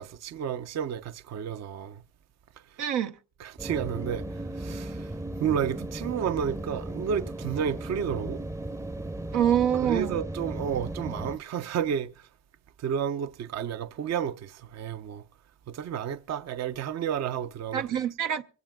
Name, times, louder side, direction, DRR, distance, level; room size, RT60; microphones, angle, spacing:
voice 1, 0.0-2.0 3.4-8.4 9.8-12.3 12.8-15.2 15.7-17.8, right 8 dB, 60° right, 0.7 m, -31 dB
voice 2, 2.8-3.2 9.3-10.2 17.7-18.4, right 9 dB, 90° right, 0.9 m, -25 dB
sound 1, 3.6-11.4, right 1 dB, 10° right, 0.6 m, -36 dB
25.0 x 16.5 x 2.3 m
cardioid pair, 90°, 30 cm